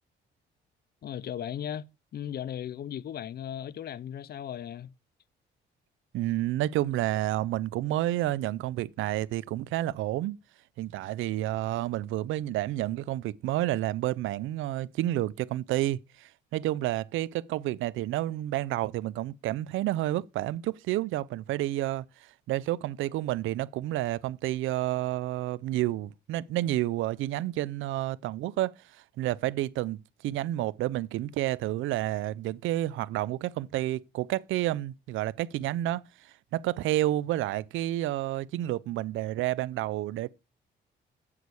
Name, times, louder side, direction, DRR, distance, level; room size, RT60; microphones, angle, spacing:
voice 1, 1.0-1.9 2.1-4.9, left 10 dB, 50° left, 0.5 m, -36 dB
voice 2, 6.1-10.4 10.8-40.3, right 15 dB, 85° right, 0.5 m, -30 dB
8.5 x 8.4 x 4.7 m
cardioid pair, 90°, 20 cm